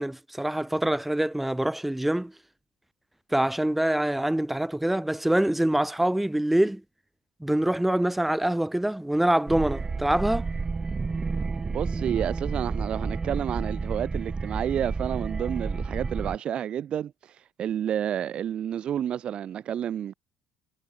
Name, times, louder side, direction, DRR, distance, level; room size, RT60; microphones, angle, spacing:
voice 1, 0.0-2.3 3.3-6.8 7.4-10.5, right 1 dB, 5° right, 3.7 m, -25 dB
sound 1, 9.5-16.4, right 4 dB, 25° right, 0.7 m, -30 dB
voice 2, 11.7-20.1, right 9 dB, 50° right, 1.5 m, -30 dB
hypercardioid pair, 55°, 2 cm